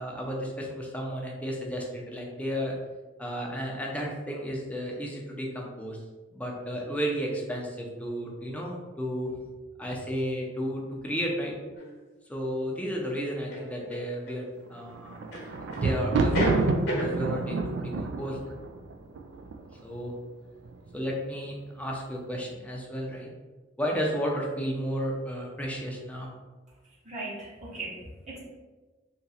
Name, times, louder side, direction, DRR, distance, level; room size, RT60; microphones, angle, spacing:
voice 1, 0.0-2.7 3.2-6.0 6.3-9.3 9.8-11.5 12.3-15.2 15.7-18.4 19.8-20.1 20.9-23.3 23.8-26.3, equal, 5° left, -1 dB, 0.6 m, -33 dB
sound 1, 11.8-11.9 13.5-14.4 15.3-15.9 16.1-17.1, equal, 60° left, 0.9 m, -31 dB
Thunder, 14.8-19.9 20.6-21.2 21.4-21.5, right 3 dB, 65° right, 0.3 m, -29 dB
voice 2, 27.0-28.4, right 2 dB, 40° right, -6 dB, 1.0 m, -38 dB
2.9 x 2.5 x 4.1 m, 1.3 s
head